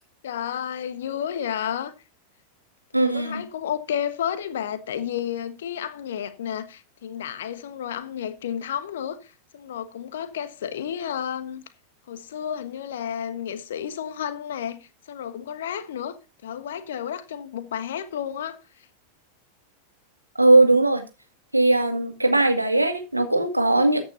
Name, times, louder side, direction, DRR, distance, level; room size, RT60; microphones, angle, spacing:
voice 1, 0.2-1.9 3.0-11.6 12.1-16.2 16.4-18.9, left 9 dB, 60° left, 1.3 m, -31 dB
voice 2, 2.9-3.4 20.4-21.0 21.5-24.0, right 2 dB, 85° right, 1.8 m, -19 dB
14.0 x 8.9 x 2.7 m
figure-of-eight pair, 90°, 0 cm